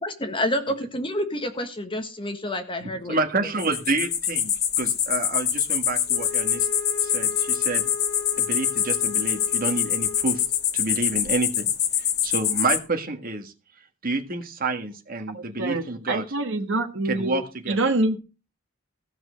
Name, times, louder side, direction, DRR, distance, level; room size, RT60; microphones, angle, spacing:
voice 1, 0.0-3.5, left 1 dB, 25° left, 1.3 m, -29 dB
voice 2, 2.8-4.5 4.8-6.7 7.0-7.8 8.4-10.4 10.7-11.7 12.2-13.5 14.0-16.2 17.1-17.8, right 3 dB, 45° right, 1.7 m, -28 dB
sound 1, 3.6-12.8, left 9 dB, 55° left, 1.3 m, -25 dB
Wind instrument woodwind instrument, 6.1-10.7, left 5 dB, 75° left, 2.8 m, -37 dB
voice 3, 15.3-17.4 17.7-18.2, right 2 dB, 65° right, 1.3 m, -25 dB
15.5 x 6.0 x 6.4 m
head